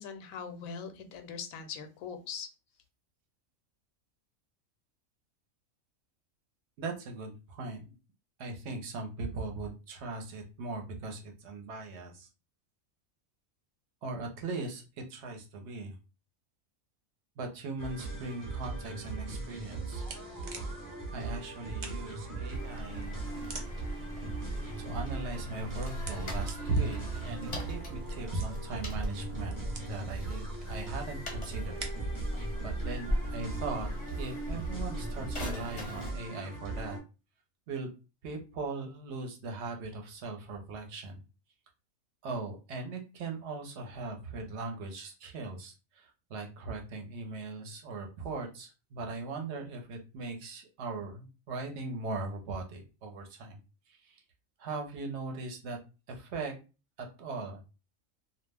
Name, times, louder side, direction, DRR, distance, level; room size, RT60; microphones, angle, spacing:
voice 1, 0.0-2.5, left 6 dB, 80° left, 7 dB, 1.0 m, -41 dB
voice 2, 6.8-7.9 8.4-12.3 14.0-16.0 17.4-20.0 21.1-23.3 24.8-29.6 29.9-31.8 32.3-33.9 34.2-37.0 37.7-37.9 38.2-41.2 42.2-53.6 53.9-54.2 54.6-55.8 56.1-56.5 57.0-57.6, right 3 dB, 60° right, 3 dB, 0.9 m, -39 dB
sound 1, 17.8-37.0, right 3 dB, 20° right, 0.6 m, -40 dB
sound 2, 19.5-32.2, right 3 dB, 85° right, 0.3 m, -45 dB
sound 3, 22.5-36.1, equal, 40° left, 0.6 m, -39 dB
2.4 x 2.1 x 3.2 m, 0.31 s
omnidirectional pair, 1.4 m